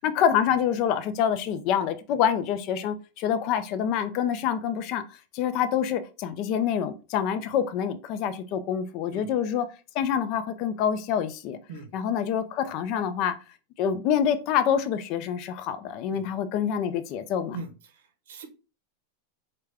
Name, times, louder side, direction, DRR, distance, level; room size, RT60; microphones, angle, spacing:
voice 1, 0.0-5.0 5.3-9.7 9.9-11.6 11.9-13.4 13.8-17.6, left 8 dB, 40° left, 0.4 m, -26 dB
voice 2, 9.1-9.3 11.7-11.9 16.1-16.2 17.5-17.7 18.3-18.5, right 4 dB, 80° right, 0.9 m, -39 dB
4.8 x 2.2 x 3.3 m
supercardioid pair, 160°, 0 cm